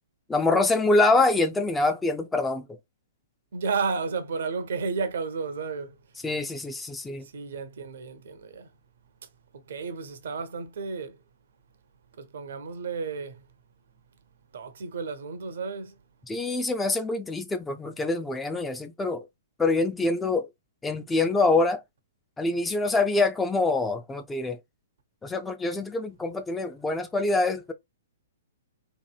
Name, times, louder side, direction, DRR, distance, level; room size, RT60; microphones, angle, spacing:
voice 1, 0.3-2.8 6.2-7.3 16.3-19.3 19.6-20.5 20.8-21.8 22.4-24.6 25.2-27.7, left 3 dB, 10° left, 0.3 m, -25 dB
voice 2, 3.5-6.0 7.2-8.7 9.7-11.2 12.2-13.5 14.5-16.0, right 5 dB, 60° right, 0.5 m, -32 dB
2.8 x 2.6 x 2.3 m
figure-of-eight pair, 115°, 0 cm